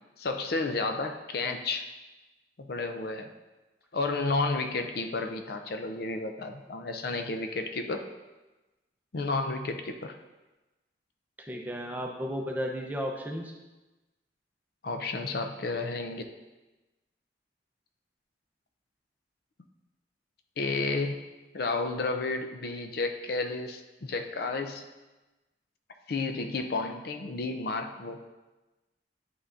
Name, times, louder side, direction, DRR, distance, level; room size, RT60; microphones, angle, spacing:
voice 1, 0.2-1.9 2.6-3.3 3.9-8.0 9.1-10.2 14.8-16.2 20.6-21.2 21.5-24.8 26.1-28.2, left 3 dB, 55° left, 5 dB, 0.5 m, -31 dB
voice 2, 11.5-13.5, equal, 10° right, 0 dB, 0.6 m, -34 dB
9.5 x 5.6 x 2.6 m, 1.1 s
head